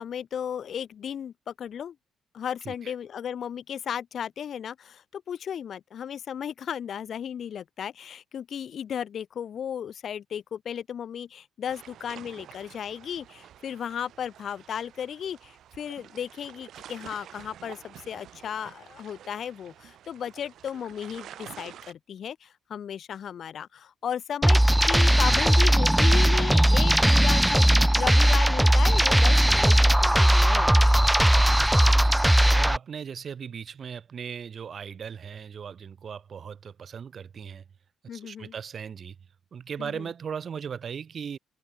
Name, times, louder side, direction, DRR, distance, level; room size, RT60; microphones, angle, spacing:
voice 1, 0.0-1.9 2.3-31.0 38.1-38.5 39.8-40.1, left 8 dB, 60° left, 1.5 m, -35 dB
sound 1, 11.7-21.9, right 10 dB, 70° right, 4.3 m, -48 dB
sound 2, 24.4-32.8, right 1 dB, 5° right, 0.5 m, -19 dB
voice 2, 31.8-37.6 38.1-39.2 39.5-41.4, right 7 dB, 50° right, 5.7 m, -38 dB
cardioid pair, 90°, 0 cm